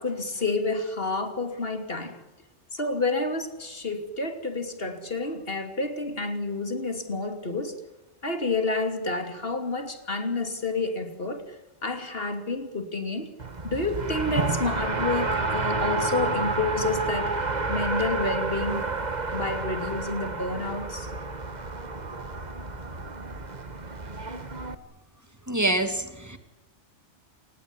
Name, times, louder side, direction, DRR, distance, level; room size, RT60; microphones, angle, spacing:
voice 1, 0.0-2.2 2.7-7.8 8.2-11.6 11.8-13.3 13.6-18.9 19.3-21.1, left 3 dB, 55° left, 3.1 m, -29 dB
Race car auto racing, 13.4-24.7, right 3 dB, 40° right, 1.7 m, -30 dB
voice 2, 25.5-26.4, right 2 dB, 15° right, 2.6 m, -26 dB
29.0 x 19.0 x 9.8 m
omnidirectional pair, 1.2 m